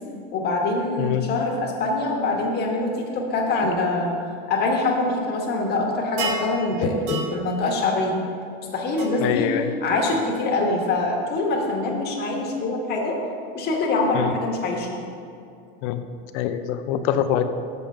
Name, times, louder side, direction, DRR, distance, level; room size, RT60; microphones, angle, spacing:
voice 1, 0.3-4.1 4.5-8.2 8.7-9.5 9.8-13.2 13.5-15.0, left 2 dB, 35° left, 0 dB, 1.5 m, -24 dB
voice 2, 1.0-1.3 7.1-7.2 9.2-9.7 14.1-14.3 15.8-16.0 16.3-17.4, left 10 dB, 55° left, 9 dB, 0.6 m, -24 dB
sound 1, 6.2-6.5 7.1-7.3 9.0-9.1, right 4 dB, 55° right, 1.1 m, -29 dB
6.9 x 5.3 x 5.7 m, 2.4 s
supercardioid pair, 130°, 30 cm